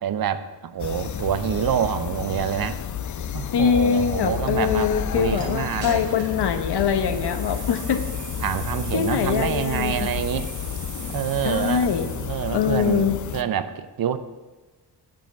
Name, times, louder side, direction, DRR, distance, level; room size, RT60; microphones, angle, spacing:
voice 1, 0.0-2.8 3.3-6.0 7.0-7.2 8.4-10.5 11.1-14.2, right 9 dB, 55° right, 12 dB, 0.7 m, -27 dB
sound 1, 0.8-13.4, left 8 dB, 45° left, 0.5 m, -31 dB
voice 2, 3.5-8.0 8.9-10.1 11.4-12.1 12.5-13.2, left 7 dB, 65° left, 8 dB, 1.1 m, -23 dB
sound 2, 5.4-5.5 5.8-6.4 6.9-12.5, right 4 dB, 75° right, 3.6 m, -40 dB
8.9 x 5.8 x 7.7 m, 1.3 s
cardioid pair, 90°, 43 cm